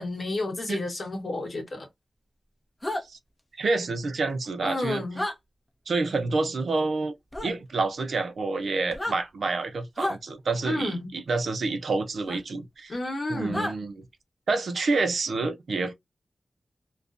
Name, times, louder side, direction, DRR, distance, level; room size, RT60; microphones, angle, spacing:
voice 1, 0.0-1.9 4.6-5.2 10.6-11.1 12.9-13.6, left 2 dB, 50° left, 1.1 m, -31 dB
sound 1, 2.8-3.0 5.1-5.4 7.3-7.5 8.9-9.2 10.0-10.2 12.3-12.4 13.5-13.7, left 1 dB, 15° left, 0.6 m, -30 dB
voice 2, 3.6-5.0 5.9-7.1 7.4-12.9 13.3-13.9 14.5-15.9, right 3 dB, 75° right, 0.6 m, -28 dB
2.4 x 2.1 x 2.4 m
wide cardioid pair, 120°, 0 cm